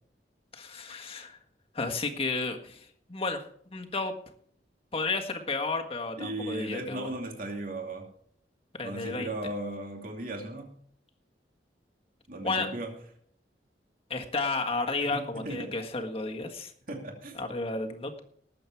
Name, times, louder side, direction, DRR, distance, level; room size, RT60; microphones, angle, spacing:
voice 1, 0.5-1.4 1.7-3.4 3.7-4.1 4.9-7.1 8.7-9.3 12.4-12.7 14.1-16.7 17.4-18.2, left 3 dB, 35° left, 3 dB, 1.6 m, -32 dB
voice 2, 6.2-8.1 8.8-10.7 12.3-12.9 15.0-15.7 16.9-17.4, right 1 dB, 50° right, 1 dB, 2.6 m, -36 dB
19.5 x 7.7 x 4.6 m, 0.62 s
head